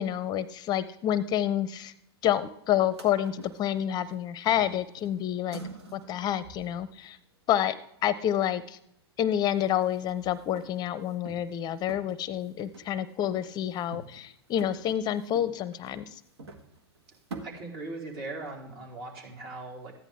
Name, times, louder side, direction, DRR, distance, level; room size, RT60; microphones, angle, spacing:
voice 1, 0.0-1.9 2.2-5.6 5.9-7.2 7.5-7.8 8.0-8.8 9.2-16.2, left 11 dB, 30° left, 17 dB, 0.5 m, -28 dB
sound 1, 2.8-4.2 4.5-7.1 9.3-9.4 9.6-11.6 11.9-13.0 13.3-14.3 14.6-17.4, right 3 dB, 80° right, 1.5 m, -47 dB
voice 2, 17.4-19.9, right 2 dB, 55° right, -1 dB, 4.0 m, -39 dB
14.0 x 10.0 x 3.5 m, 0.75 s
hypercardioid pair, 105°, 14 cm